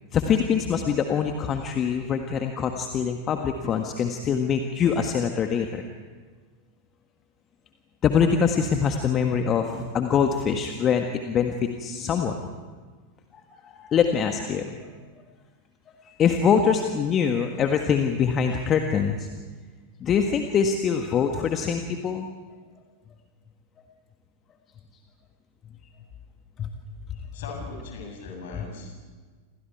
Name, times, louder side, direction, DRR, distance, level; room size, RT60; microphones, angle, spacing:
voice 1, 0.1-5.8 8.0-12.3 13.6-14.8 16.0-19.3 20.0-22.3 26.6-26.7 28.6-28.7, left 7 dB, 30° left, 4 dB, 1.6 m, -24 dB
voice 2, 27.3-29.0, left 3 dB, 55° left, 2 dB, 7.6 m, -40 dB
29.0 x 27.5 x 4.8 m, 1.4 s
figure-of-eight pair, 90°, 0 cm